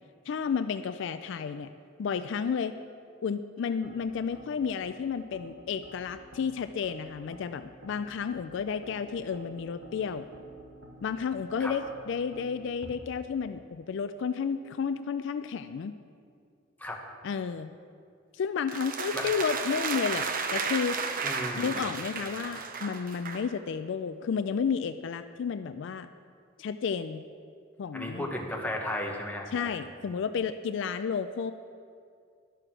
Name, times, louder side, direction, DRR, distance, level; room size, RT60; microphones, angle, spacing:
voice 1, 0.3-1.7 2.0-2.7 3.2-10.3 11.0-15.9 17.2-17.7 18.3-21.0 21.5-26.1 26.6-27.2 27.8-28.3 29.5-31.5, left 6 dB, 65° left, 11 dB, 0.4 m, -32 dB
sound 1, 3.7-13.1, right 1 dB, 80° right, 1.3 m, -51 dB
sound 2, 18.7-23.5, right 5 dB, 45° right, 0.7 m, -33 dB
voice 2, 21.2-21.8 27.9-29.8, left 1 dB, 10° left, 0 dB, 1.2 m, -34 dB
11.5 x 6.8 x 6.1 m, 2.3 s
head